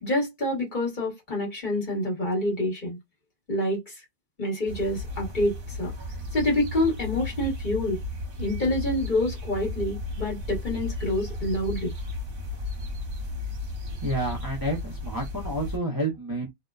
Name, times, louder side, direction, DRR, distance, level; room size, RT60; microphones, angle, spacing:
voice 1, 0.0-3.0 3.5-3.9 4.4-5.9 6.3-8.0 8.4-11.9, left 1 dB, 45° left, 1.4 m, -27 dB
sound 1, 4.7-15.8, left 2 dB, 55° right, 1.0 m, -34 dB
voice 2, 13.8-16.5, right 1 dB, 25° right, 0.6 m, -30 dB
2.7 x 2.1 x 2.3 m
omnidirectional pair, 1.2 m